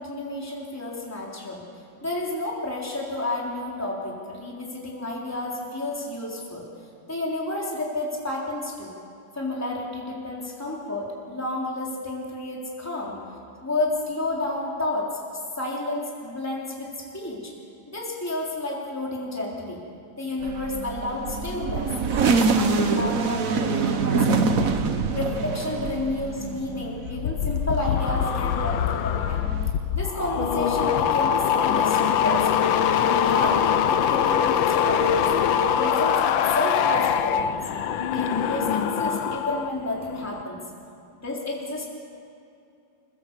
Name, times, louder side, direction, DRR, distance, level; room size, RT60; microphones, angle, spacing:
voice 1, 0.0-1.6 2.0-6.7 7.1-8.9 9.4-13.2 13.6-17.5 17.9-19.8 20.2-24.7 25.1-29.4 29.9-32.5 33.0-35.2 35.8-37.6 38.1-40.6 41.2-41.9, left 2 dB, 10° left, -3 dB, 3.7 m, -31 dB
sound 1, 20.4-27.3 27.7-29.7, right 4 dB, 50° right, 1.5 m, -25 dB
sound 2, 27.0-39.7 40.0-40.4, left 8 dB, 85° left, 1.6 m, -23 dB
28.5 x 16.5 x 7.5 m, 2.6 s
omnidirectional pair, 2.1 m